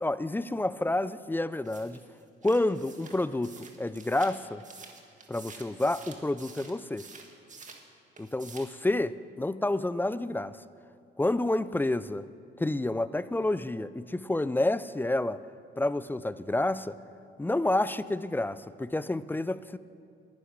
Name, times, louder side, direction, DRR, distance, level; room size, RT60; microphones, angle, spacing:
voice 1, 0.0-2.0 2.4-4.6 5.3-7.1 8.2-10.6 11.2-12.2 12.6-15.4 15.8-17.0 17.4-19.8, left 2 dB, 10° left, 16 dB, 0.4 m, -29 dB
sound 1, 1.6-7.9 8.2-8.8, right 4 dB, 40° right, 1.8 m, -49 dB
11.5 x 9.5 x 9.9 m, 2.4 s
cardioid pair, 90°, 20 cm